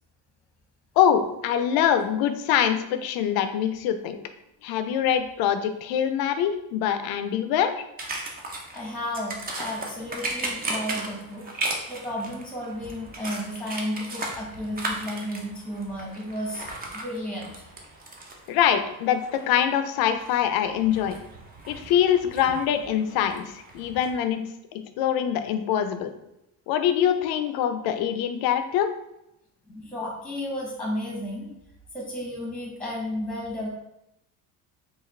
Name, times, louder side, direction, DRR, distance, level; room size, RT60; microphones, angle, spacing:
voice 1, 1.0-4.2 4.6-7.7 18.5-21.2 21.7-24.4 24.7-26.1 26.7-28.9, left 9 dB, 70° left, 9 dB, 0.5 m, -24 dB
sound 1, 8.0-24.1, right 2 dB, 25° right, 0.6 m, -37 dB
voice 2, 8.7-11.4 11.9-16.6 16.9-17.7 29.7-31.5 31.9-33.7, left 1 dB, ahead, -2 dB, 1.0 m, -33 dB
4.8 x 2.5 x 3.2 m, 0.85 s
cardioid pair, 135°, 38 cm